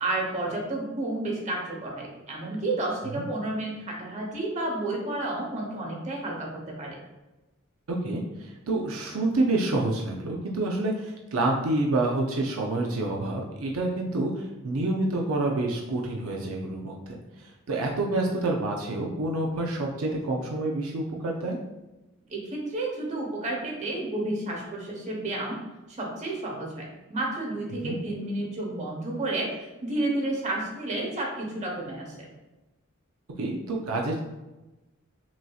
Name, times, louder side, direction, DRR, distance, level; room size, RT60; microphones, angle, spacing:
voice 1, 0.0-7.0 22.3-25.6 25.9-29.5 29.8-32.3, right 2 dB, 35° right, -2 dB, 1.0 m, -31 dB
voice 2, 7.9-17.2 17.7-21.6 27.8-28.0 33.4-34.2, right 2 dB, 80° right, 0 dB, 0.5 m, -28 dB
5.9 x 2.7 x 2.3 m, 1.0 s
head